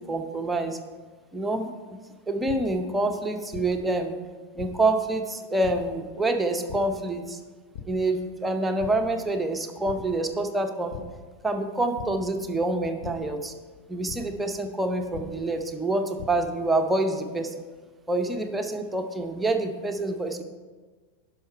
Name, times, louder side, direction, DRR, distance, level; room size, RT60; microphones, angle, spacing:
voice 1, 0.1-0.8 1.3-1.7 2.3-4.2 4.6-7.4 7.9-10.9 11.4-13.5 13.9-17.5 18.1-20.4, right 2 dB, 10° right, 5 dB, 0.8 m, -27 dB
sound 1, 2.4-2.5 3.5-3.6 4.6-4.7 5.6-5.7 6.7-6.8 7.7-7.8 8.3-8.5 8.8-8.9 9.8-9.9 10.9-11.0 12.0-12.1 13.0-13.1 14.1-14.2 15.1-15.2 15.9-16.3, left 9 dB, 45° left, 1.1 m, -38 dB
11.0 x 5.6 x 4.4 m, 1.4 s
figure-of-eight pair, 90°, 0 cm